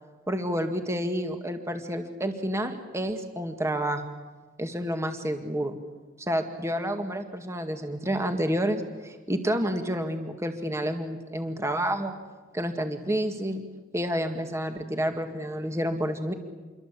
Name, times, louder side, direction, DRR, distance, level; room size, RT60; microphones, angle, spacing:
voice 1, 0.3-4.0 4.6-5.8 6.2-12.2 12.5-13.6 13.9-16.3, equal, 15° right, 6 dB, 1.9 m, -29 dB
28.5 x 23.5 x 8.4 m, 1.3 s
head